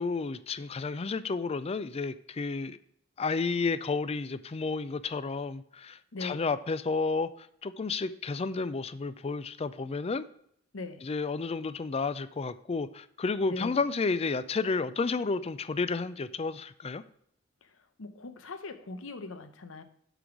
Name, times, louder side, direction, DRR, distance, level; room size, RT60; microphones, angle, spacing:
voice 1, 0.0-2.8 3.2-10.2 11.0-17.0, left 4 dB, 30° left, 0.4 m, -31 dB
voice 2, 6.1-6.5 10.7-11.1 13.5-13.8 18.0-19.8, left 3 dB, 80° left, 0.8 m, -40 dB
8.1 x 4.0 x 6.0 m
head